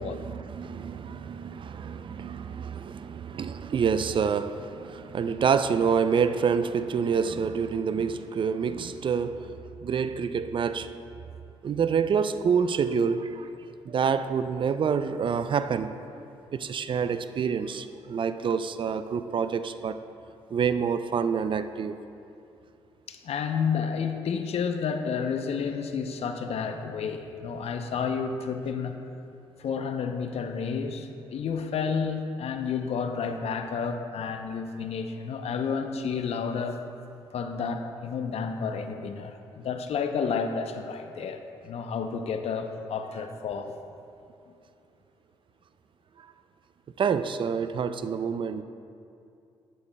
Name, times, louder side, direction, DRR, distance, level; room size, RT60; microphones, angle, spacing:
voice 1, 0.0-10.9 11.6-13.5 13.9-15.9 16.5-20.0 20.5-22.0 47.0-48.6, right 6 dB, 45° right, 11 dB, 0.4 m, -27 dB
voice 2, 23.1-29.1 29.6-36.8 37.3-43.8, left 6 dB, 65° left, 7 dB, 0.6 m, -31 dB
10.5 x 8.6 x 2.2 m, 2.6 s
supercardioid pair, 55°, 11 cm